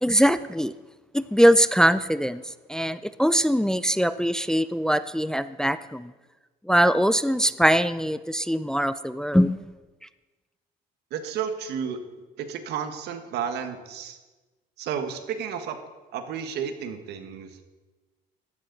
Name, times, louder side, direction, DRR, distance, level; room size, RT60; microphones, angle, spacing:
voice 1, 0.0-0.7 1.1-2.4 2.7-6.1 6.7-9.7, equal, 5° left, 14 dB, 0.4 m, -22 dB
voice 2, 11.1-12.0 12.4-14.2 14.8-15.8 16.1-17.6, right 7 dB, 80° right, 8 dB, 1.5 m, -32 dB
15.0 x 11.5 x 4.0 m, 1.2 s
cardioid pair, 110°, 17 cm